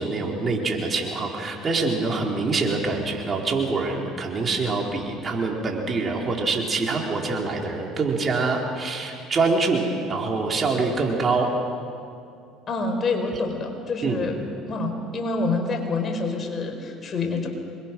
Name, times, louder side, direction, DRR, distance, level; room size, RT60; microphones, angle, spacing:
voice 1, 0.0-11.5 13.3-13.4 14.0-14.3, right 3 dB, 35° right, 0 dB, 4.4 m, -25 dB
voice 2, 12.7-14.4 14.7-17.5, left 3 dB, 40° left, 4 dB, 4.7 m, -27 dB
27.0 x 22.5 x 6.3 m, 2.5 s
hypercardioid pair, 70°, 0 cm